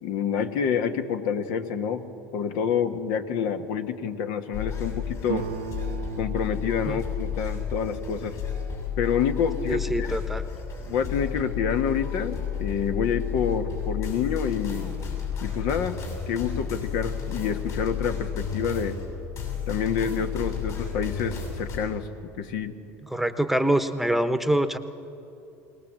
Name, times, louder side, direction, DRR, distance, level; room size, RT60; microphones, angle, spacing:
voice 1, 0.0-2.0 2.3-5.5 6.2-8.4 9.0-10.2 10.9-14.9 15.4-16.0 16.3-19.0 19.7-22.1 22.4-22.8, left 7 dB, 75° left, 7 dB, 1.4 m, -27 dB
sound 1, 4.5-21.8, left 7 dB, 50° left, 7.1 m, -32 dB
sound 2, 5.2-8.9, right 10 dB, 80° right, 0.7 m, -38 dB
voice 2, 9.7-10.4 23.0-24.8, right 1 dB, 5° right, 10 dB, 1.0 m, -25 dB
21.5 x 19.0 x 7.6 m, 2.7 s
supercardioid pair, 95°, 7 cm